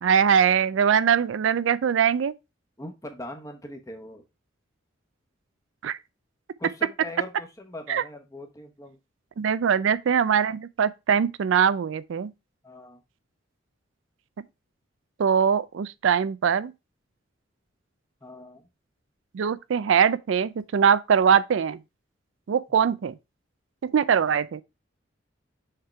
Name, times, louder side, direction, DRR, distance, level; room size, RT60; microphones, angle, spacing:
voice 1, 0.0-2.3 5.8-6.0 7.9-8.0 9.4-12.3 15.2-16.7 19.3-21.8 22.5-23.1 23.8-24.6, right 7 dB, 70° right, 0.4 m, -22 dB
voice 2, 2.8-4.2 6.6-9.0 12.6-13.0 18.2-18.6, left 1 dB, 15° left, 1.1 m, -40 dB
6.5 x 3.6 x 4.4 m
head